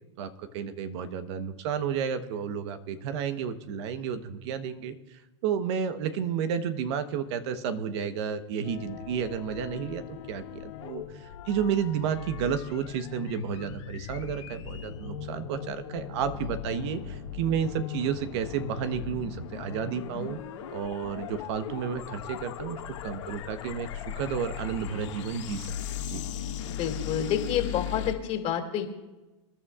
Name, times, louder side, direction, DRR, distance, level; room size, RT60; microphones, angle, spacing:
voice 1, 0.2-4.9 5.4-20.4 20.7-25.7 26.1-26.2, right 7 dB, 65° right, 9 dB, 1.1 m, -31 dB
sound 1, 8.6-28.1, left 9 dB, 75° left, 1.9 m, -38 dB
voice 2, 26.7-28.8, left 9 dB, 45° left, 3 dB, 2.4 m, -29 dB
27.0 x 11.5 x 2.4 m, 1.1 s
hypercardioid pair, 110°, 16 cm